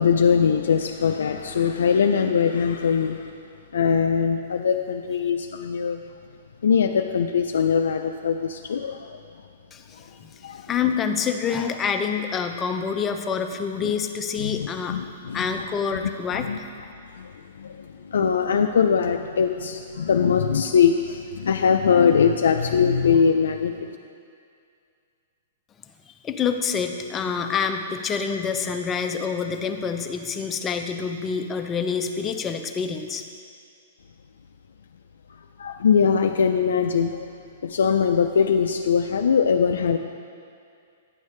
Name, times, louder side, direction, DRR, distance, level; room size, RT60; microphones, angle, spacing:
voice 1, 0.0-3.3 3.7-6.0 6.6-9.2 10.4-10.7 14.4-15.5 16.3-16.6 17.1-17.3 17.6-23.7 35.3-37.3 37.6-40.0, left 6 dB, 85° left, 4 dB, 0.3 m, -21 dB
voice 2, 9.7-15.0 15.3-16.5 26.1-33.2, left 6 dB, 20° left, 5 dB, 0.5 m, -27 dB
9.4 x 6.4 x 3.2 m, 2.3 s
hypercardioid pair, 140°, 0 cm